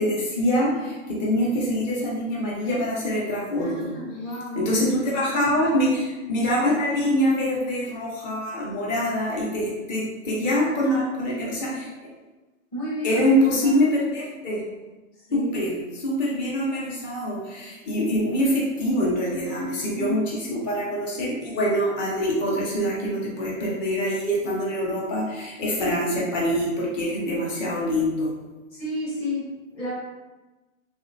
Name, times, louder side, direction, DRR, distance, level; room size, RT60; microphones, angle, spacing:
voice 1, 0.0-3.9 4.6-11.9 13.0-14.6 15.3-20.2 20.5-28.3, equal, 35° left, -5 dB, 1.0 m, -24 dB
voice 2, 3.6-4.8 5.3-5.7 10.5-11.8 12.7-13.2 13.6-13.8 15.1-15.5 19.8-20.3 28.7-29.9, left 1 dB, 10° left, -8 dB, 0.8 m, -32 dB
3.2 x 2.7 x 2.6 m, 1.2 s
hypercardioid pair, 155°, 40 cm